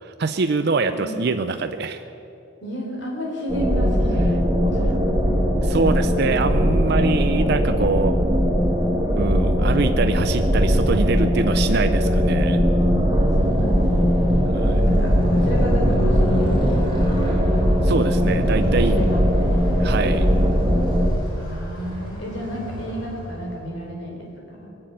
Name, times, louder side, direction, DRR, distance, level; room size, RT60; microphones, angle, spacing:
voice 1, 0.0-2.0 5.6-8.1 9.2-12.6 14.5-14.8 17.8-18.9 19.8-20.3, right 4 dB, 50° right, 9 dB, 0.5 m, -24 dB
voice 2, 0.9-1.3 2.6-5.2 12.6-14.4 14.8-17.5 18.7-19.8 21.3-24.7, equal, 55° left, 0 dB, 3.8 m, -31 dB
sound 1, 3.5-21.1, equal, 15° right, 1.5 m, -19 dB
Motorcycle, 13.1-23.7, equal, 20° left, 4.0 m, -30 dB
20.0 x 7.8 x 9.0 m, 2.9 s
head